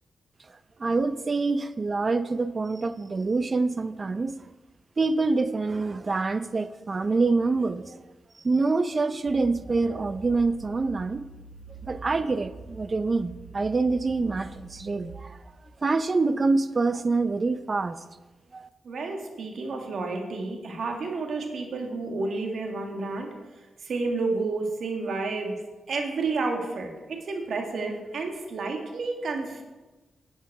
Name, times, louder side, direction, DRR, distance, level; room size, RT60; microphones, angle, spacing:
voice 1, 0.8-4.3 5.0-8.0 8.4-11.2 11.8-15.4 15.8-18.0 18.5-18.7, right 3 dB, 35° right, 13 dB, 0.6 m, -26 dB
sound 1, 9.3-15.1, right 3 dB, 5° right, 3.2 m, -46 dB
voice 2, 18.8-23.3 23.8-29.6, right 3 dB, 70° right, 3 dB, 1.9 m, -30 dB
11.0 x 8.1 x 4.8 m, 1.2 s
cardioid pair, 85°, 0 cm